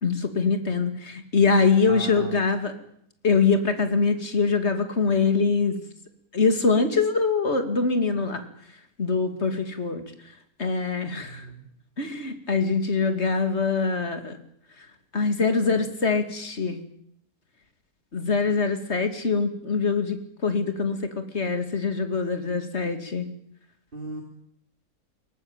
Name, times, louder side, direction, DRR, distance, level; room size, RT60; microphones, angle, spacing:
voice 1, 0.0-2.7 3.2-5.8 6.3-8.4 9.0-10.1 10.6-11.5 12.0-14.4 15.1-16.8 18.1-23.2, left 4 dB, 50° left, 8 dB, 2.8 m, -24 dB
voice 2, 1.9-2.4 11.1-11.6 23.9-24.2, right 2 dB, 35° right, 2 dB, 2.9 m, -37 dB
22.5 x 19.0 x 9.1 m, 0.70 s
omnidirectional pair, 1.5 m